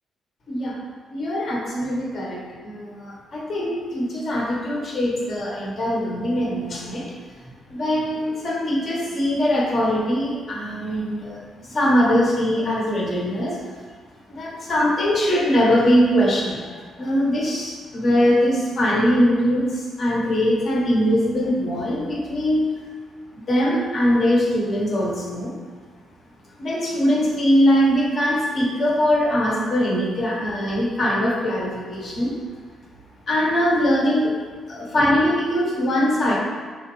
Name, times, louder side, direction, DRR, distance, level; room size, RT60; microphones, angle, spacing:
voice 1, 1.1-7.1 7.7-13.6 14.3-22.7 23.5-25.6 26.6-32.4 33.3-34.4 34.7-36.4, equal, 45° left, -3 dB, 0.9 m, -21 dB
3.7 x 3.0 x 3.0 m, 1.5 s
cardioid pair, 115°, 0 cm